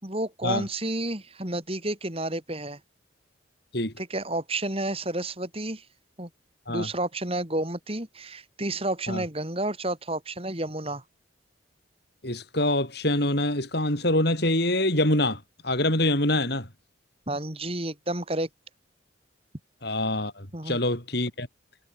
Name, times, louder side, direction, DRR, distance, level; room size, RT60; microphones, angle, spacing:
voice 1, 0.0-2.8 4.0-5.8 6.2-6.3 6.7-11.0 17.3-18.5 20.5-20.8, right 1 dB, 30° right, 4.8 m, -30 dB
voice 2, 12.2-16.7 19.8-21.5, left 1 dB, 55° left, 7.7 m, -25 dB
head